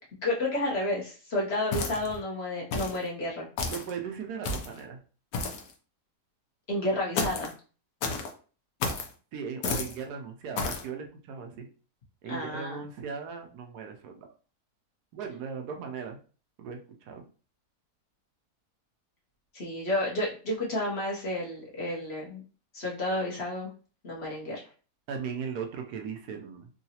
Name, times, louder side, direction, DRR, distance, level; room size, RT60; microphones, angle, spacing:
voice 1, 0.2-3.5 6.7-7.5 12.3-12.8 19.5-22.4 22.7-23.7 24.0-24.6, left 1 dB, 45° left, -4 dB, 1.1 m, -31 dB
sound 1, 1.7-2.2 2.7-3.0 3.6-3.9 4.4-4.8 5.3-5.7 7.2-7.5 8.0-8.3 8.8-9.1 9.6-10.0 10.6-10.9, left 3 dB, 70° left, 1.1 m, -31 dB
voice 2, 3.7-5.0 9.3-11.7 12.2-14.2 15.1-16.2 16.6-17.2 25.1-26.7, right 6 dB, 75° right, 3 dB, 1.2 m, -38 dB
3.8 x 2.3 x 2.8 m, 0.38 s
omnidirectional pair, 1.7 m